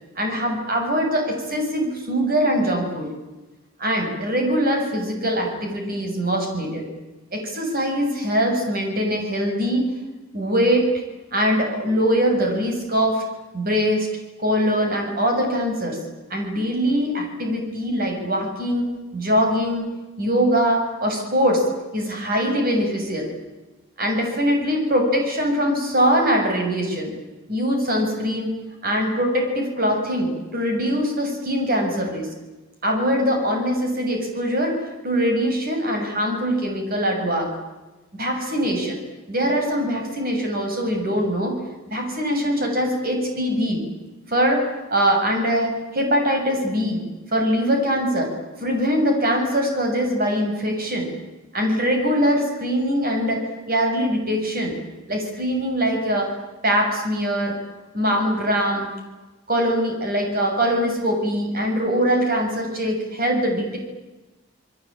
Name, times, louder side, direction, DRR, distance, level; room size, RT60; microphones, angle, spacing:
voice 1, 0.2-3.1 3.8-6.9 7.3-9.9 10.3-10.9 11.3-13.2 13.5-14.1 14.4-16.0 16.3-18.9 19.1-19.8 20.2-21.6 21.9-23.3 24.0-27.1 27.5-28.5 28.8-32.3 32.8-37.5 38.1-39.0 39.3-41.6 41.9-43.8 44.3-44.6 44.9-47.0 47.3-48.3 48.6-51.1 51.5-54.7 55.1-56.3 56.6-57.6 57.9-58.9 59.5-63.8, equal, 45° right, 2 dB, 7.0 m, -22 dB
29.0 x 21.5 x 8.8 m, 1.1 s
head